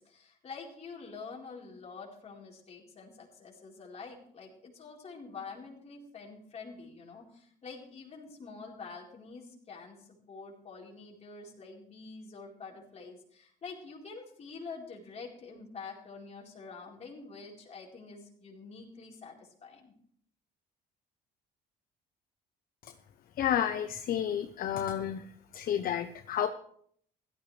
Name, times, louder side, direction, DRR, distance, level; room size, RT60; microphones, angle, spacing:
voice 1, 0.0-19.9, left 4 dB, 40° left, -2 dB, 4.3 m, -47 dB
voice 2, 23.4-25.2 25.5-26.5, left 10 dB, 60° left, 8 dB, 0.9 m, -30 dB
16.5 x 13.5 x 3.3 m, 0.63 s
cardioid pair, 110°, 17 cm